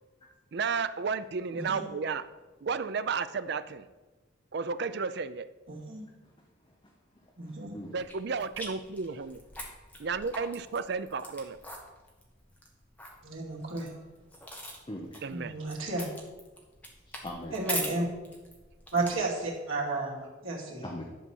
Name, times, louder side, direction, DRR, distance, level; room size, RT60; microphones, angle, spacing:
voice 1, 0.5-2.2 2.6-3.9 4.5-5.5 7.9-9.4 10.0-11.6 15.2-15.5, right 5 dB, 55° right, 13 dB, 0.4 m, -32 dB
voice 2, 1.5-1.8 5.7-6.0 7.4-7.8 13.2-13.9 15.3-16.1 17.5-18.1 18.9-20.8, right 2 dB, 80° right, -3 dB, 2.4 m, -32 dB
voice 3, 7.2-7.9 14.9-15.2 17.1-17.6 20.8-21.0, left 1 dB, 25° left, 0 dB, 0.9 m, -41 dB
sound 1, 8.0-19.6, equal, 5° left, 1.2 m, -43 dB
11.0 x 4.1 x 7.1 m, 1.2 s
head